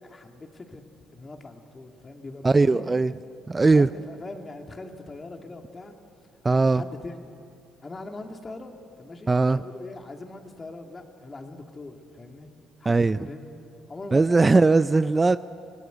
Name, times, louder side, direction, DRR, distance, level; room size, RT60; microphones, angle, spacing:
voice 1, 0.0-0.8 1.1-2.9 3.7-6.0 6.6-7.1 7.8-12.5 12.8-13.5 13.9-14.6, left 2 dB, 30° left, 4 dB, 2.6 m, -41 dB
voice 2, 2.4-3.1 3.5-3.9 6.4-6.8 9.3-9.6 12.9-13.3 14.1-15.4, right 3 dB, 25° right, 14 dB, 0.5 m, -19 dB
26.0 x 18.5 x 8.1 m, 2.5 s
supercardioid pair, 65°, 0 cm